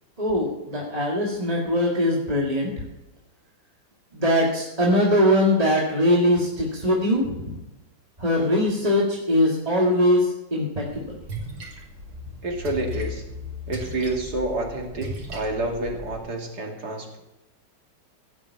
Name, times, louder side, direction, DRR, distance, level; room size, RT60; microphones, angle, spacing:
voice 1, 0.2-2.7 4.1-7.6 8.2-11.2, left 1 dB, 20° right, -3 dB, 2.0 m, -21 dB
Splash splatter, 10.8-16.1, left 1 dB, 85° right, 3.2 m, -36 dB
voice 2, 12.4-13.2 13.7-17.2, right 2 dB, 55° right, 1 dB, 2.9 m, -29 dB
16.5 x 6.3 x 8.4 m, 0.96 s
omnidirectional pair, 2.2 m